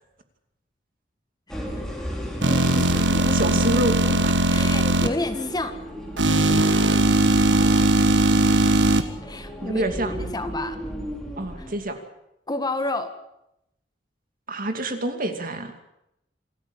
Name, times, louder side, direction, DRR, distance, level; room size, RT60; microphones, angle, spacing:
sound 1, 1.5-11.7, equal, 5° left, 4.9 m, -34 dB
sound 2, 2.4-5.1 6.2-9.0, right 2 dB, 80° right, 1.7 m, -19 dB
voice 1, 3.3-4.0 4.2-4.3 7.5-8.0 9.6-10.1 11.4-12.0 14.5-15.7, right 1 dB, 50° right, 7 dB, 2.6 m, -27 dB
voice 2, 4.5-5.8 9.2-9.9 10.3-10.8 12.5-13.1, left 2 dB, 20° left, 8 dB, 1.6 m, -29 dB
27.5 x 13.5 x 8.8 m, 0.84 s
head